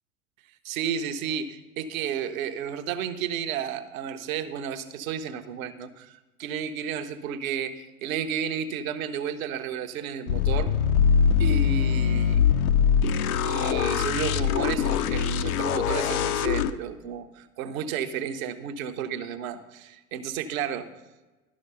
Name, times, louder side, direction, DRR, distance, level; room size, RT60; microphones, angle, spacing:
voice 1, 0.6-10.8 11.4-12.4 13.4-20.9, right 8 dB, 60° right, 8 dB, 1.0 m, -32 dB
sound 1, 10.3-16.7, left 7 dB, 65° left, 0.7 m, -23 dB
12.0 x 6.2 x 5.5 m, 1.1 s
figure-of-eight pair, 80°, 47 cm